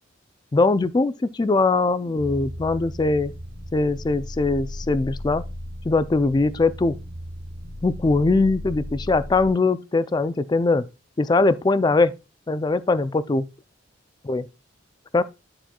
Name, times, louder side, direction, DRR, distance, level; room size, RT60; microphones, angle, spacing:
voice 1, 0.5-3.3 3.7-5.4 5.9-7.0 7.8-10.8 11.2-12.1 12.5-13.5 14.2-14.5 15.1-15.2, left 3 dB, 20° left, 0.3 m, -21 dB
sound 1, 2.2-9.5, left 1 dB, 75° right, 1.1 m, -36 dB
11.5 x 4.3 x 2.3 m
head